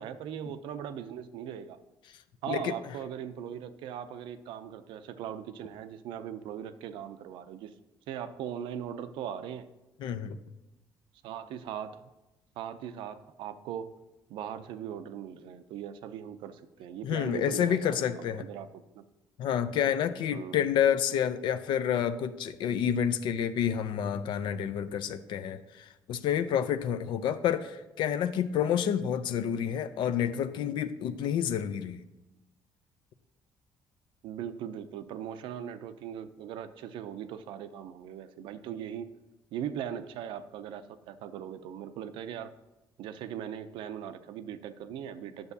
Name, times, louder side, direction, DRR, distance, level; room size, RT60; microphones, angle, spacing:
voice 1, 0.0-1.8 2.4-7.7 8.1-9.7 11.2-12.1 12.6-13.9 14.3-19.0 20.3-20.6 34.2-39.1 39.5-42.5 43.0-45.5, right 9 dB, 85° right, 12 dB, 0.5 m, -39 dB
voice 2, 10.0-10.4 17.0-18.5 19.4-32.0, left 9 dB, 75° left, 11 dB, 0.4 m, -29 dB
10.0 x 6.8 x 2.7 m, 1.0 s
cardioid pair, 110°, 8 cm